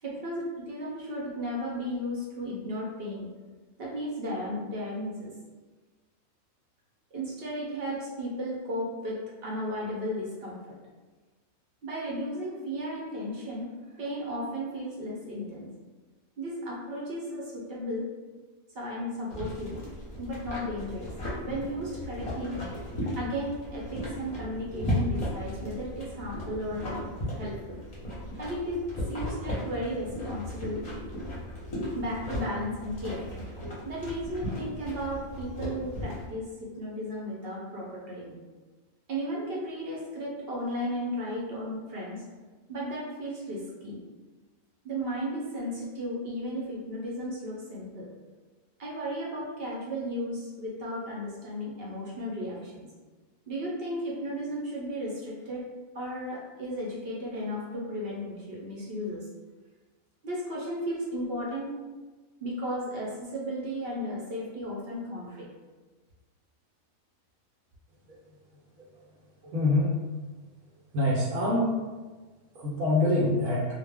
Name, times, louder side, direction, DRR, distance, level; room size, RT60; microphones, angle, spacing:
voice 1, 0.0-3.3 3.8-5.3 7.1-10.7 11.8-13.7 14.0-15.7 16.4-18.1 18.7-19.8 20.2-21.1 21.4-22.6 23.2-27.8 28.4-28.8 29.1-30.8 31.9-33.3 33.8-38.4 39.1-42.2 42.7-44.0 44.8-48.1 48.8-52.9 53.5-55.7 55.9-59.2 60.2-61.7 62.4-65.5, equal, 55° right, -4 dB, 0.7 m, -34 dB
sound 1, 19.3-36.3, equal, 35° left, 0.7 m, -36 dB
voice 2, 69.4-69.9 70.9-71.7 72.5-73.7, left 2 dB, 90° right, -6 dB, 1.1 m, -25 dB
2.4 x 2.1 x 3.3 m, 1.3 s
omnidirectional pair, 1.4 m